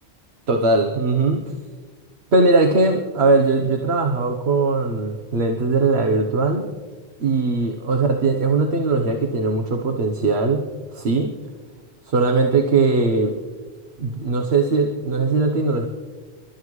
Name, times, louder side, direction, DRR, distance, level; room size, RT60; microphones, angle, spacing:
voice 1, 0.5-1.5 2.3-6.7 7.2-11.3 12.0-13.3 14.0-15.9, right 3 dB, 75° right, 4 dB, 1.4 m, -20 dB
29.0 x 13.0 x 3.2 m, 1.5 s
omnidirectional pair, 1.1 m